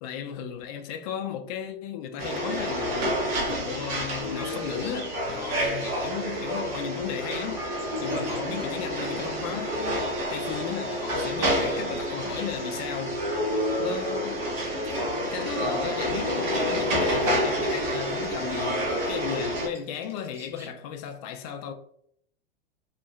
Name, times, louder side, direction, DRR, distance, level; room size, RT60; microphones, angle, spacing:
voice 1, 0.0-3.2 3.5-7.7 8.0-13.3 13.8-14.5 15.3-21.7, left 8 dB, 40° left, 0.4 m, -35 dB
sound 1, 2.2-19.7, equal, 50° right, 0.9 m, -28 dB
sound 2, 4.4-20.7, right 1 dB, 10° right, 0.6 m, -49 dB
2.9 x 2.3 x 2.4 m
figure-of-eight pair, 100°, 30 cm